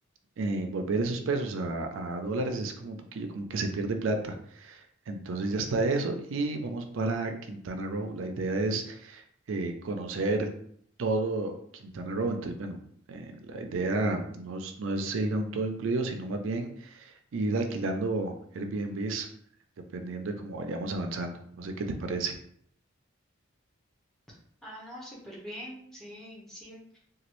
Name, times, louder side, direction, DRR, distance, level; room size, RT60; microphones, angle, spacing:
voice 1, 0.4-10.5 11.0-12.8 13.1-19.3 19.9-22.3, right 2 dB, 75° right, 5 dB, 0.4 m, -31 dB
voice 2, 24.6-27.0, equal, ahead, -6 dB, 0.8 m, -44 dB
2.9 x 2.3 x 3.0 m, 0.65 s
head